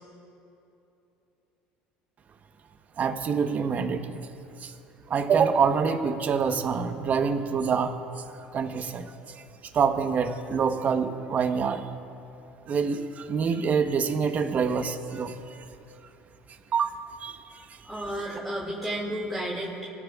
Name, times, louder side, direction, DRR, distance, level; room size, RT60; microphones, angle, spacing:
voice 1, 3.0-4.2 4.6-4.7 5.1-7.9 8.5-9.1 9.7-11.9 12.7-15.6 16.7-17.4 17.7-17.8, right 6 dB, 40° right, 7 dB, 1.1 m, -26 dB
voice 2, 17.8-19.9, right 1 dB, 5° left, -6 dB, 2.8 m, -32 dB
30.0 x 16.0 x 2.4 m, 2.8 s
supercardioid pair, 95°, 4 cm